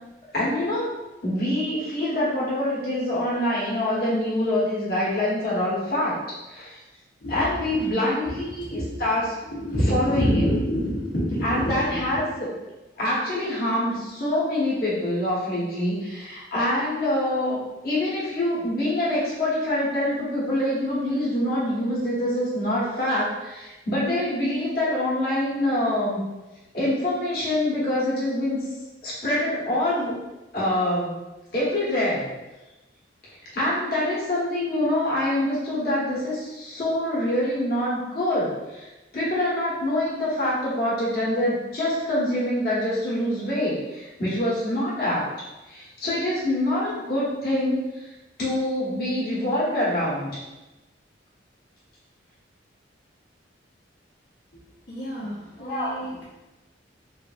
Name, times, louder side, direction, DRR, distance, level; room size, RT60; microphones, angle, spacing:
voice 1, 0.3-0.9 1.2-6.1 6.5-6.8 7.3-9.3 9.8-10.5 11.4-12.5 13.0-26.2 26.7-28.7 29.0-30.1 30.5-31.1 31.5-32.3 33.5-38.9 39.1-45.3 45.7-47.8 48.4-50.3 55.6-56.0, left 1 dB, 50° left, -8 dB, 1.1 m, -25 dB
voice 2, 7.2-7.8 8.2-9.1 9.5-12.0 54.9-56.2, equal, 75° left, -9 dB, 0.9 m, -27 dB
3.3 x 2.5 x 2.4 m, 1.1 s
head